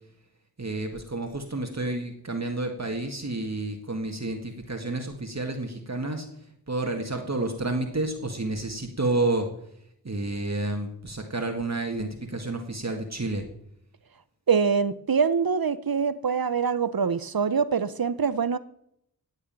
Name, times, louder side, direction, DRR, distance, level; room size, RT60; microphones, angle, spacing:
voice 1, 0.6-6.3 6.7-9.5 10.0-13.4, right 2 dB, 45° right, 1.8 m, -30 dB
voice 2, 14.5-18.6, right 6 dB, 65° right, 0.9 m, -24 dB
17.0 x 6.5 x 8.9 m
wide cardioid pair, 70°, 38 cm